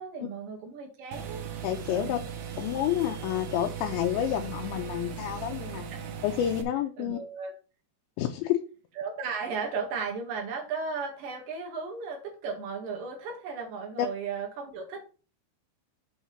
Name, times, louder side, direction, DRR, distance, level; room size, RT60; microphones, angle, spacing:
voice 1, 0.0-1.5 1.8-2.2 5.9-6.0 7.0-7.5 9.0-15.0, right 5 dB, 55° right, 1 dB, 2.8 m, -35 dB
sound 1, 1.1-6.6, right 7 dB, 75° right, 2.1 m, -38 dB
voice 2, 1.6-2.2 2.6-5.9 6.2-7.2 8.2-8.6 14.0-14.1, left 11 dB, 80° left, 3 dB, 2.7 m, -29 dB
8.5 x 3.7 x 5.7 m, 0.34 s
omnidirectional pair, 5.7 m